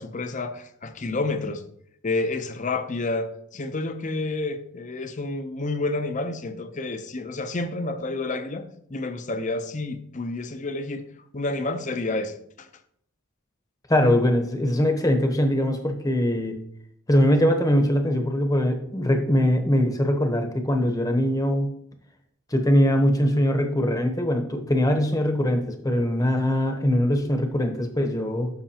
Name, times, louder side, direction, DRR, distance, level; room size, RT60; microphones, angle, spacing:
voice 1, 0.0-1.6 2.0-11.0 11.3-12.7, left 2 dB, 35° left, 0.7 m, -29 dB
voice 2, 13.9-16.6 17.1-21.7 22.5-28.5, equal, 15° left, 1.0 m, -22 dB
12.5 x 5.8 x 2.9 m
head